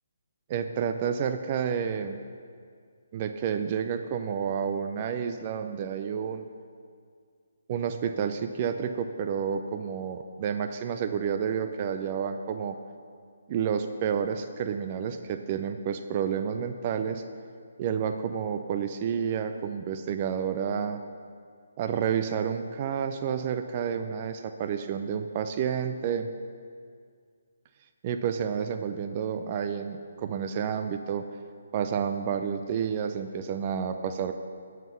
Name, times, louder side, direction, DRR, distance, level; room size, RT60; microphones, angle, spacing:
voice 1, 0.5-2.2 3.1-6.4 7.7-12.8 13.5-17.2 17.8-21.0 21.8-26.3 28.0-31.3 31.7-34.3, right 7 dB, 35° right, 8 dB, 0.5 m, -30 dB
10.5 x 5.9 x 7.0 m, 2.1 s
figure-of-eight pair, 145°, 0 cm